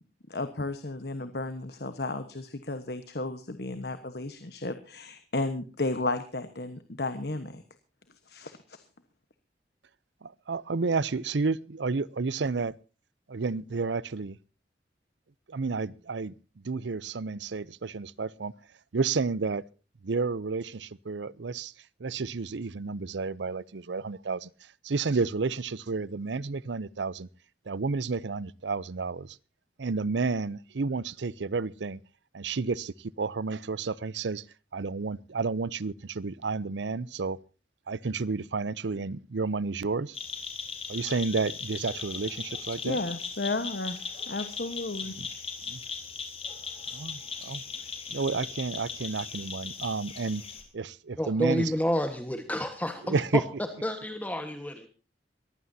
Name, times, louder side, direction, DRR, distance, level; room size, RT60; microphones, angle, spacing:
voice 1, 0.3-7.6 8.3-8.8 42.8-44.0 44.3-45.1, left 2 dB, 60° left, 1.2 m, -33 dB
voice 2, 10.2-12.7 13.3-14.4 15.5-16.3 16.6-18.5 18.9-19.6 20.0-21.7 22.0-24.5 24.8-27.3 27.7-29.4 29.8-32.0 32.3-34.4 34.7-37.4 37.9-40.2 40.9-43.0 45.1-45.3 45.7-45.8 46.9-47.6 48.1-50.4 50.7-51.7 53.0-53.4, right 4 dB, 80° right, 0.6 m, -31 dB
sound 1, 40.1-50.6, left 6 dB, 35° left, 3.8 m, -38 dB
voice 3, 51.2-53.2 53.8-54.9, equal, 10° left, 1.4 m, -30 dB
22.5 x 15.5 x 2.8 m
head